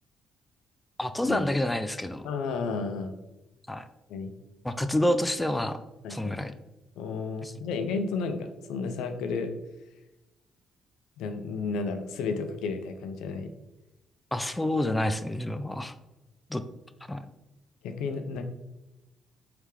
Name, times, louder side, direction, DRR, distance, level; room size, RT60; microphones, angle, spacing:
voice 1, 1.0-2.3 3.7-3.9 4.6-5.8 6.1-6.5 7.4-7.5 14.3-15.9 16.5-16.6 17.1-17.3, left 1 dB, 10° left, 10 dB, 0.3 m, -28 dB
voice 2, 2.2-3.2 4.1-4.3 6.0-6.4 7.0-9.5 11.2-13.5 17.8-18.4, left 4 dB, 90° left, 7 dB, 0.5 m, -32 dB
4.9 x 3.3 x 3.2 m, 1.0 s
cardioid pair, 90°, 0 cm